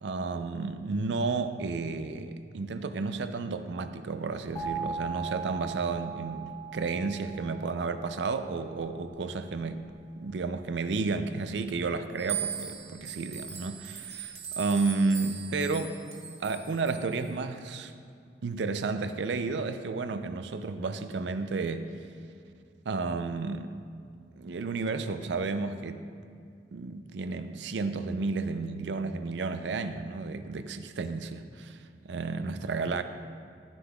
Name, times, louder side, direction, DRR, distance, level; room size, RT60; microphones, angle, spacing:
voice 1, 0.0-9.8 10.2-16.0 16.4-17.9 18.4-21.9 22.9-23.7 24.4-26.0 26.7-31.8 32.0-33.0, right 4 dB, 75° right, 10 dB, 0.4 m, -32 dB
sound 1, 4.6-9.3, right 5 dB, 20° left, 1.3 m, -39 dB
sound 2, 12.2-17.2, right 8 dB, 35° right, 1.3 m, -39 dB
11.5 x 9.9 x 2.3 m, 2.3 s
head